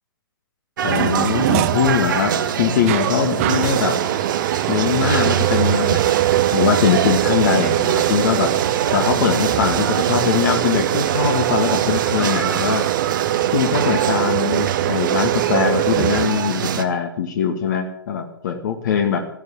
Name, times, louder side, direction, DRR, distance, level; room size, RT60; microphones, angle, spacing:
voice 1, 0.8-4.0 4.7-6.1 6.5-8.5 8.9-12.9 13.5-19.2, left 7 dB, 50° left, 4 dB, 1.9 m, -21 dB
sound 1, 0.8-16.8, right 8 dB, 55° right, 1.3 m, -24 dB
sound 2, 0.9-16.3, right 15 dB, 35° right, 0.6 m, -22 dB
14.5 x 10.5 x 7.3 m, 0.73 s
figure-of-eight pair, 120°, 12 cm